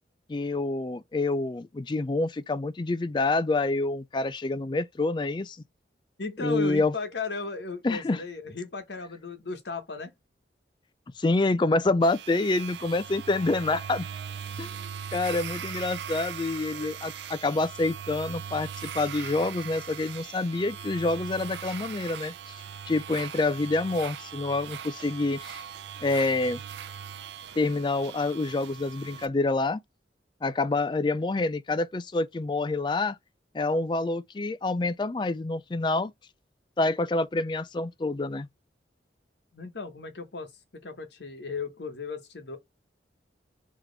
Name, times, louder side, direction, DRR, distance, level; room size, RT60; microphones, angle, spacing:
voice 1, 0.3-5.6 6.4-6.9 7.8-8.2 11.2-14.1 14.6-14.7 15.1-22.5 22.9-25.6 26.0-26.6 27.6-29.8 30.4-33.2 33.5-36.1 36.8-38.5, left 2 dB, 25° left, 0.3 m, -27 dB
voice 2, 6.2-10.1 16.7-17.1 39.5-42.6, left 4 dB, 70° left, 1.1 m, -36 dB
sound 1, 12.0-29.3, right 8 dB, 75° right, 0.5 m, -40 dB
4.1 x 3.0 x 3.3 m
head